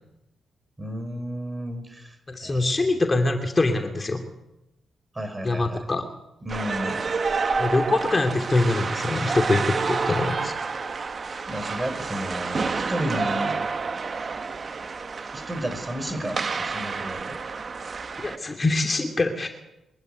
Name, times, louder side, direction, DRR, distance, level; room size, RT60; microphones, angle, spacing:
voice 1, 0.8-2.2 2.4-3.0 5.1-5.9 6.4-7.0 11.5-13.6 15.3-17.4, equal, 20° right, 8 dB, 6.0 m, -32 dB
voice 2, 2.3-4.2 5.4-6.0 7.6-10.5 18.2-19.5, left 2 dB, 35° left, 4 dB, 2.7 m, -24 dB
sound 1, 6.5-18.4, right 4 dB, 50° right, 1.4 m, -29 dB
23.5 x 12.0 x 9.4 m, 0.90 s
supercardioid pair, 55°, 0 cm